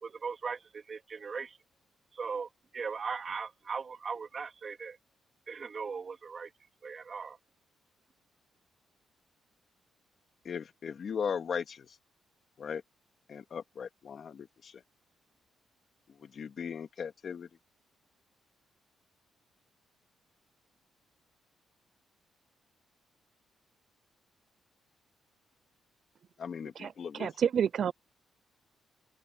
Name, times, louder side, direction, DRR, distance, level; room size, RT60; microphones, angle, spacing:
voice 1, 0.0-1.6 2.1-5.0 5.5-6.5 6.8-7.4, right 5 dB, 45° right, 3.1 m, -39 dB
voice 2, 10.4-12.0 12.6-12.8 13.3-14.8 16.1-17.5 26.4-27.3, left 7 dB, 55° left, 2.4 m, -38 dB
voice 3, 27.2-27.9, right 8 dB, 60° right, 0.5 m, -28 dB
cardioid pair, 95°, 0 cm